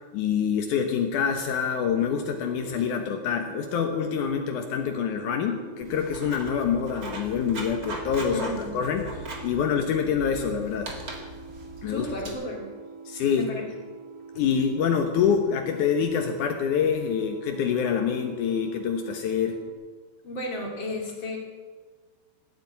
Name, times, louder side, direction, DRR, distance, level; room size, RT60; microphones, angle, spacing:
voice 1, 0.1-9.1 9.4-10.9 11.8-12.1 13.1-13.5 14.4-19.6, left 7 dB, 85° left, 5 dB, 1.7 m, -26 dB
sound 1, 1.9-19.7, right 5 dB, 75° right, 1.8 m, -45 dB
Writing, 5.8-12.3, right 1 dB, 55° right, 0.9 m, -39 dB
voice 2, 8.3-8.8 11.9-12.7 13.4-13.7 20.2-21.4, left 1 dB, 35° left, 1 dB, 2.3 m, -33 dB
17.0 x 9.0 x 9.2 m, 1.4 s
omnidirectional pair, 5.2 m